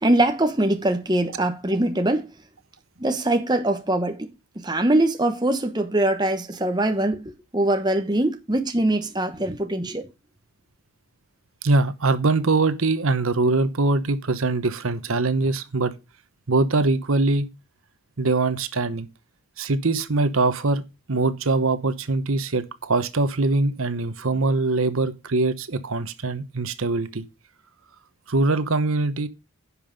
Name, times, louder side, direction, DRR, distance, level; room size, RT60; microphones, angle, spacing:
voice 1, 0.0-2.3 3.0-10.1, right 1 dB, 20° right, 1.1 m, -23 dB
voice 2, 11.6-15.9 16.5-17.5 18.2-19.1 19.6-20.8 21.1-27.2 28.3-29.3, right 3 dB, 75° right, 1.0 m, -22 dB
10.5 x 5.6 x 5.2 m
head